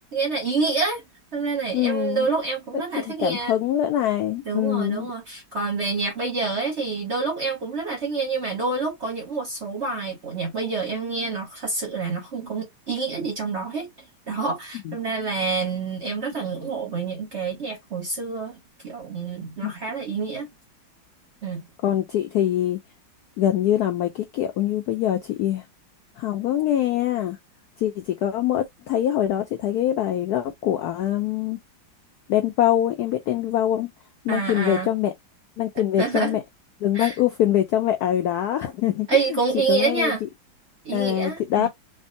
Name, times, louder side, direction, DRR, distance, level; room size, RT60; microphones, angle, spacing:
voice 1, 0.1-1.0 1.3-3.6 4.5-13.9 14.3-18.6 18.8-20.5 21.4-21.6 34.3-34.9 36.0-36.4 36.9-37.2 39.1-40.2 40.8-41.7, right 4 dB, 50° right, 0.8 m, -27 dB
voice 2, 1.7-2.3 3.2-5.1 14.9-15.0 19.6-19.7 21.8-22.8 23.4-25.6 26.2-27.4 27.8-31.6 32.3-33.9 34.2-35.1 35.6-36.4 36.8-39.1 39.7-40.1 40.9-41.7, left 11 dB, 85° left, 0.8 m, -23 dB
3.5 x 2.0 x 2.6 m
omnidirectional pair, 2.2 m